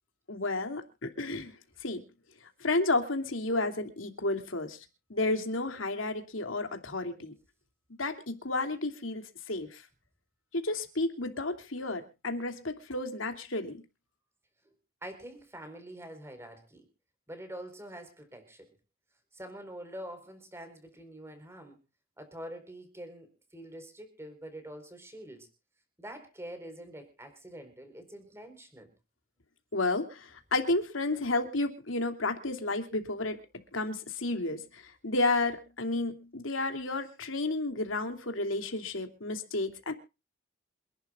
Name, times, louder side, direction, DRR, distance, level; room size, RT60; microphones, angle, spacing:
voice 1, 0.3-2.0 2.6-4.8 5.1-7.3 8.0-9.8 10.5-13.8 29.7-39.9, left 2 dB, 75° left, 6 dB, 2.9 m, -32 dB
voice 2, 15.0-16.9 17.3-18.7 19.3-21.8 22.2-25.5 26.0-28.9, right 1 dB, 15° right, 8 dB, 4.6 m, -45 dB
27.5 x 11.5 x 2.5 m, 0.31 s
head